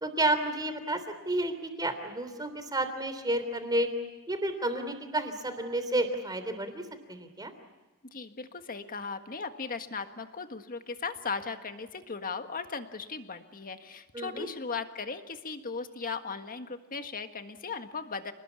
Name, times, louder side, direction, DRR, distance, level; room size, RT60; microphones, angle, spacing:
voice 1, 0.0-3.9 4.3-6.8 7.1-7.5 14.1-14.5, right 1 dB, 20° right, 9 dB, 3.3 m, -31 dB
voice 2, 8.1-18.3, left 5 dB, 40° left, 7 dB, 1.7 m, -37 dB
29.0 x 20.0 x 8.5 m, 1.2 s
head